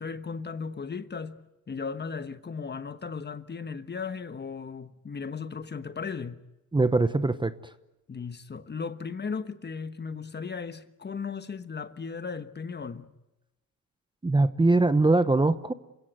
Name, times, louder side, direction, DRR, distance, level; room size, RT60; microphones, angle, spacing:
voice 1, 0.0-1.4 1.7-6.4 8.1-13.1, left 5 dB, 30° left, 1.2 m, -36 dB
voice 2, 6.7-7.5 14.2-15.7, right 2 dB, 15° right, 0.9 m, -22 dB
27.5 x 16.5 x 9.4 m
cardioid pair, 90°, 33 cm